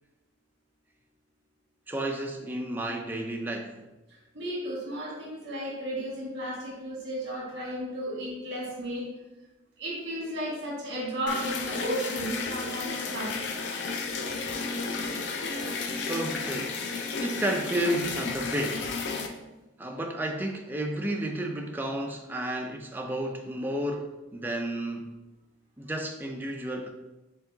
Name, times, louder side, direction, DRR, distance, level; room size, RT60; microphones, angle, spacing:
voice 1, 1.9-3.8 15.6-15.8 16.1-16.8 17.2-18.9 19.8-25.1 25.8-26.9, right 1 dB, 10° right, 2 dB, 0.4 m, -32 dB
voice 2, 4.1-9.1 9.8-13.4 13.9-14.1, equal, 60° right, -4 dB, 1.3 m, -34 dB
sound 1, 11.3-19.3, left 4 dB, 70° left, 0.5 m, -33 dB
4.5 x 3.6 x 2.7 m, 1.0 s
head